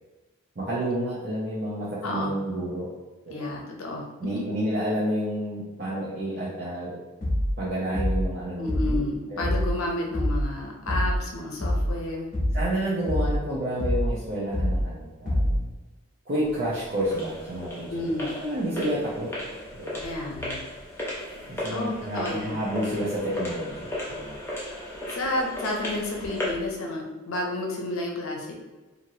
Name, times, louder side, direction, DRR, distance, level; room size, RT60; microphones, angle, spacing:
voice 1, 0.6-2.9 3.3-3.5 4.2-6.9 7.6-9.0 9.3-9.6 12.5-15.7 16.3-19.3 19.7-20.0 21.4-24.4, right 1 dB, 45° right, -8 dB, 0.6 m, -30 dB
voice 2, 2.0-2.4 3.3-4.0 8.6-12.3 17.9-18.4 20.0-20.6 21.7-22.6 25.1-28.5, left 2 dB, 70° left, 0 dB, 0.6 m, -31 dB
sound 1, 7.2-7.6 7.9-8.3 8.7-9.0 9.4-9.8 10.1-10.5 10.9-11.2 11.6-12.0 12.3-12.7 13.1-13.4 13.8-14.2 14.5-14.9 15.3-15.7, equal, 35° left, 0.9 m, -25 dB
sound 2, 16.4-26.7, left 1 dB, 10° left, 0.5 m, -36 dB
3.0 x 2.6 x 2.7 m, 1.2 s
head